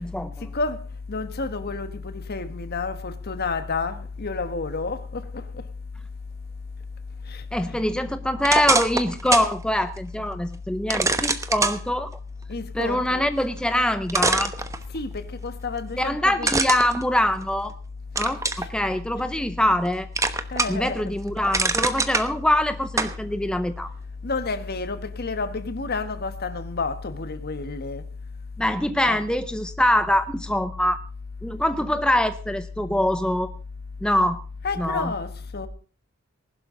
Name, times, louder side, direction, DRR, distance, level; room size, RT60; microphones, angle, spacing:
voice 1, 0.1-0.5 7.5-12.1 12.7-14.5 16.0-17.7 18.2-20.1 20.7-23.9 28.6-31.0 31.4-33.5 34.0-34.4 34.8-35.1, left 1 dB, 5° left, 0.6 m, -24 dB
voice 2, 1.1-5.4 7.3-7.4 7.7-7.8 12.5-13.3 14.9-16.5 20.5-21.1 24.2-28.0 29.0-29.2 34.6-35.7, left 4 dB, 50° left, 1.3 m, -30 dB
sound 1, 8.4-9.5 10.0-10.1 10.9-11.8 13.6-13.7 14.1-15.2 16.4-17.7 18.2-18.7 19.2-19.9 20.2-20.9 21.2-22.3 23.0-23.2, right 3 dB, 15° right, 1.0 m, -24 dB
19.5 x 12.0 x 3.8 m
head